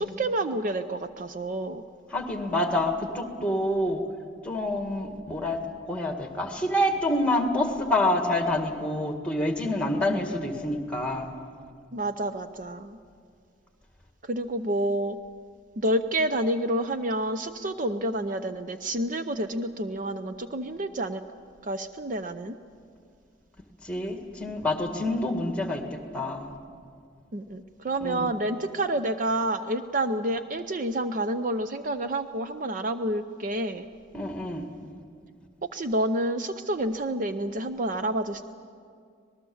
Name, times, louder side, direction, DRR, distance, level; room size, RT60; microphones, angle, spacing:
voice 1, 0.0-1.8 10.1-10.2 11.9-13.0 14.2-15.2 15.8-21.2 21.6-22.6 27.3-33.8 35.7-38.4, right 1 dB, 45° right, 9 dB, 0.6 m, -29 dB
voice 2, 2.1-4.0 4.4-5.6 5.9-11.3 23.8-26.5 28.0-28.3 34.1-34.7, left 1 dB, 5° left, 4 dB, 2.0 m, -27 dB
25.5 x 19.5 x 7.2 m, 2.2 s
head